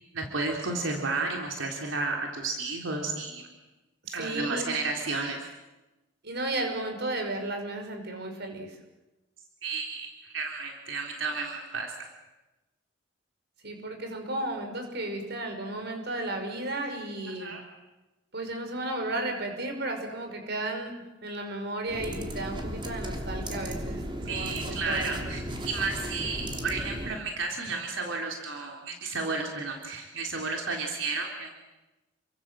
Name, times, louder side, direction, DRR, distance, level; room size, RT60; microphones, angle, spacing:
voice 1, 0.1-3.5 4.1-5.4 9.6-11.9 17.4-17.6 24.3-31.5, right 3 dB, 90° right, 1 dB, 3.8 m, -32 dB
voice 2, 4.1-4.7 6.2-8.7 13.6-17.5 18.3-20.9 21.2-24.0 24.3-25.2, right 2 dB, 60° right, 5 dB, 5.7 m, -34 dB
sound 1, 21.9-27.2, equal, 25° right, 3.3 m, -35 dB
29.5 x 24.0 x 7.7 m, 1.1 s
head